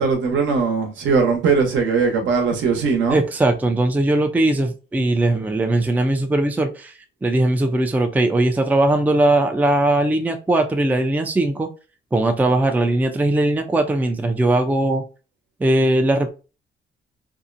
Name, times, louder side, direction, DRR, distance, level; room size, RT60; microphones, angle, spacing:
voice 1, 0.0-3.2, right 5 dB, 70° right, 0.8 m, -19 dB
voice 2, 3.1-6.9 7.2-11.7 12.1-15.0 15.6-16.3, right 2 dB, 10° right, 0.4 m, -19 dB
2.6 x 2.0 x 2.5 m
cardioid pair, 90°, 20 cm